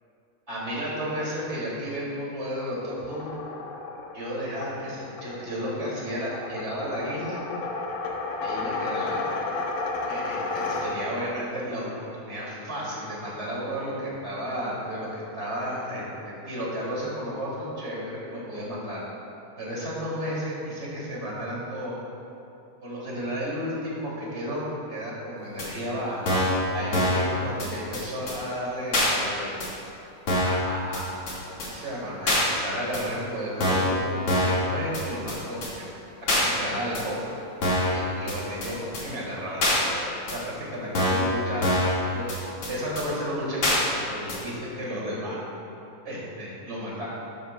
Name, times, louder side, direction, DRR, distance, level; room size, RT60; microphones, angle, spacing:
voice 1, 0.5-3.3 4.1-7.4 8.4-9.2 10.1-19.0 19.6-22.0 22.8-26.3 26.7-29.5 30.4-31.0 31.6-35.8 36.3-37.3 37.9-42.3 42.7-45.4 46.0-47.1, equal, 20° right, -6 dB, 2.6 m, -33 dB
sound 1, 3.0-11.3, left 3 dB, 85° left, 2.5 m, -32 dB
sound 2, 25.6-25.7 26.3-26.6 26.9-27.3 27.6-27.7 27.9-28.0 28.3-28.4 28.9-29.1 29.6-29.7 30.3-30.6 30.9-31.0 31.3-31.4 31.6-31.7 32.3-32.4 32.9-33.0 33.6-33.9 34.3-34.6 34.9-35.0 35.3-35.4 35.6-35.7 36.3-36.4 36.9-37.0 37.6-37.9 38.3-38.4 38.6-38.7 38.9-39.0 39.6-39.8 40.3-40.4 40.9-41.3 41.6-41.9 42.3-42.4 42.6-42.7 43.0-43.1 43.6-43.8 44.3-44.4, left 1 dB, 50° left, 2.8 m, -23 dB
12.5 x 12.5 x 2.3 m, 2.7 s
omnidirectional pair, 3.7 m